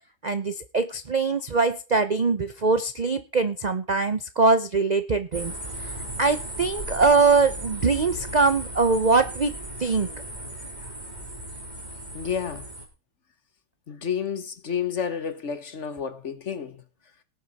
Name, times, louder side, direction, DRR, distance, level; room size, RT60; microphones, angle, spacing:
voice 1, 0.2-5.5 5.8-10.1, right 4 dB, 50° right, 0.5 m, -23 dB
sound 1, 5.3-12.8, right 1 dB, 25° right, 3.9 m, -36 dB
voice 2, 12.1-12.7 13.9-16.8, left 7 dB, 50° left, 1.3 m, -30 dB
18.5 x 8.8 x 4.2 m
omnidirectional pair, 1.8 m